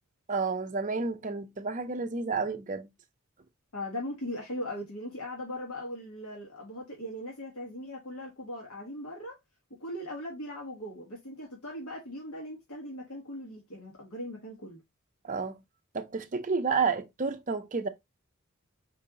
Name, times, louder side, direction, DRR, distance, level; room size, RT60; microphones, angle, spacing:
voice 1, 0.3-2.9 15.2-15.6 15.9-17.9, right 4 dB, 35° right, 0.6 m, -30 dB
voice 2, 3.7-9.4 9.8-14.8, left 1 dB, 85° left, 1.6 m, -39 dB
4.6 x 3.0 x 3.7 m
head